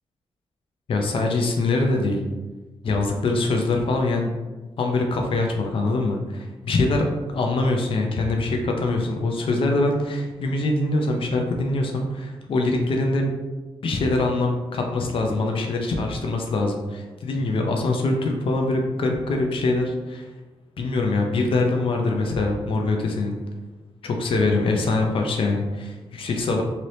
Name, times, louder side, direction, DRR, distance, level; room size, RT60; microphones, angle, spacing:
voice 1, 0.9-2.2 2.8-4.3 4.8-7.0 7.3-13.3 13.8-20.3 20.8-23.3 24.0-26.6, left 2 dB, 60° left, 2 dB, 0.5 m, -23 dB
2.8 x 2.7 x 3.2 m, 1.2 s
cardioid pair, 100°, 10 cm